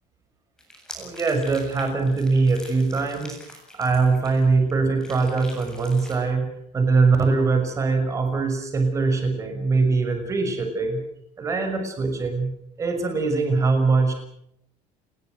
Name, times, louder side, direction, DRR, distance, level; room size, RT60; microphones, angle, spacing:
Swirling in alien substance, 0.6-4.7 5.0-6.1, left 1 dB, 5° left, 7.9 m, -44 dB
voice 1, 0.9-3.4 3.7-11.0 11.4-12.5 12.8-14.1, right 4 dB, 20° right, 5 dB, 6.3 m, -22 dB
29.5 x 21.5 x 6.4 m, 0.75 s
cardioid pair, 170°, 15 cm